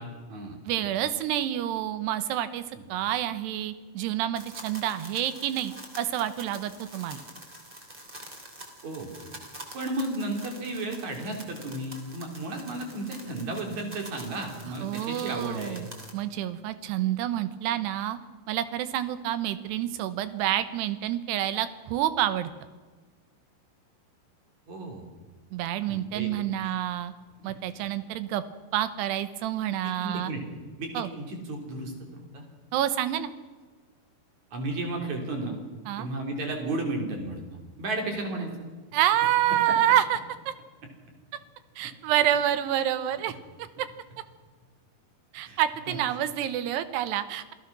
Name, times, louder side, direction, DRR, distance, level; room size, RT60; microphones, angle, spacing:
voice 1, 0.0-0.9 8.8-9.1 9.7-15.8 24.7-25.1 25.9-26.3 27.4-27.5 27.8-27.9 29.8-30.4 30.8-32.4 34.5-35.6 36.0-37.4 37.8-38.7 39.7-39.8 45.5-45.6 45.9-46.0, right 2 dB, 45° right, 2 dB, 4.5 m, -34 dB
voice 2, 0.7-2.6 2.9-7.2 14.8-18.2 18.5-22.5 25.5-27.1 27.4-28.4 28.7-30.3 30.9-31.1 32.7-33.3 35.9-36.1 38.9-40.2 40.5-40.6 41.8-43.3 45.3-47.4, right 12 dB, 85° right, 12 dB, 3.1 m, -28 dB
sound 1, 4.3-16.1, right 1 dB, 15° right, 2.6 m, -46 dB
27.0 x 16.5 x 6.1 m, 1.4 s
omnidirectional pair, 4.8 m